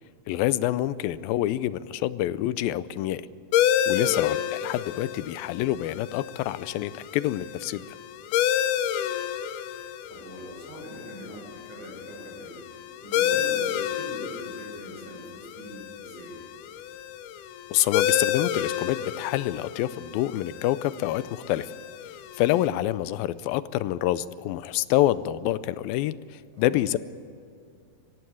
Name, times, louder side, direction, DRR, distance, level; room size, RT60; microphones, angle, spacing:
voice 1, 0.3-3.2 3.9-7.9 17.7-21.7 22.4-27.0, left 14 dB, 90° left, 16 dB, 2.5 m, -27 dB
sound 1, 3.5-22.7, left 10 dB, 75° left, 2.2 m, -30 dB
voice 2, 9.7-12.6 13.0-16.4 26.5-26.7, equal, 45° right, -1 dB, 7.0 m, -43 dB
23.5 x 16.0 x 8.6 m, 2.4 s
omnidirectional pair, 4.1 m